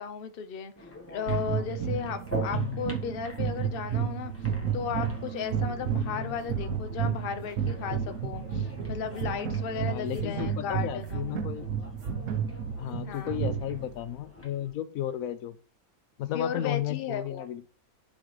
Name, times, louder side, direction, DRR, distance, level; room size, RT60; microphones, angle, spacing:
voice 1, 0.0-4.3 4.7-11.4 13.1-13.4 16.3-17.4, left 7 dB, 50° left, 0.8 m, -35 dB
sound 1, 0.7-14.7, left 1 dB, 10° left, 1.1 m, -46 dB
sound 2, 1.3-13.9, right 7 dB, 65° right, 1.2 m, -32 dB
voice 2, 2.5-2.8 6.0-6.3 9.9-11.7 12.8-15.6 16.2-17.7, left 11 dB, 85° left, 1.1 m, -34 dB
11.5 x 4.1 x 3.2 m
omnidirectional pair, 1.5 m